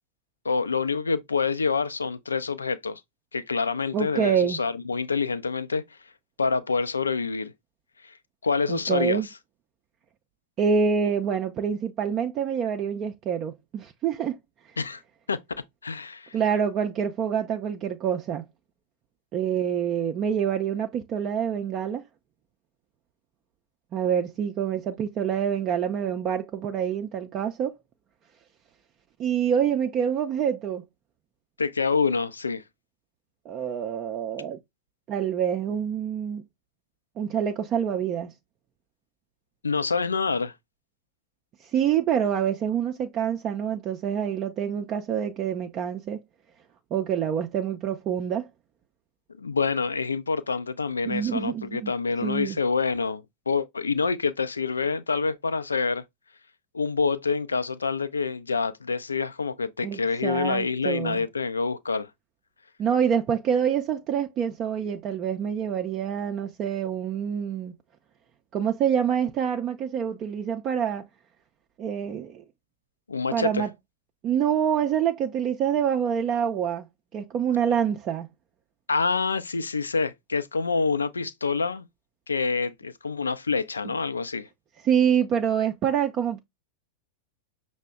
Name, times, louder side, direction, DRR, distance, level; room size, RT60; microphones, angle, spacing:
voice 1, 0.4-3.0 3.3-5.8 6.4-7.5 8.0-8.1 8.4-9.2 14.8-15.0 15.3-15.4 15.8-16.3 31.6-32.6 39.6-40.5 49.4-56.0 56.7-62.1 73.1-73.7 78.9-81.8 82.3-84.5, left 4 dB, 75° left, 0.4 m, -27 dB
voice 2, 3.9-4.6 8.7-9.3 10.6-14.4 16.3-18.4 19.3-22.0 23.9-27.7 29.2-30.8 33.5-34.6 35.1-36.4 37.2-38.3 41.6-46.2 46.9-48.5 51.1-51.9 52.2-52.6 59.8-61.2 62.8-67.7 68.5-71.1 71.8-72.4 73.3-73.7 74.2-76.9 77.1-78.3 84.8-86.4, right 8 dB, 35° right, 0.4 m, -26 dB
5.6 x 2.1 x 3.5 m
figure-of-eight pair, 90°, 0 cm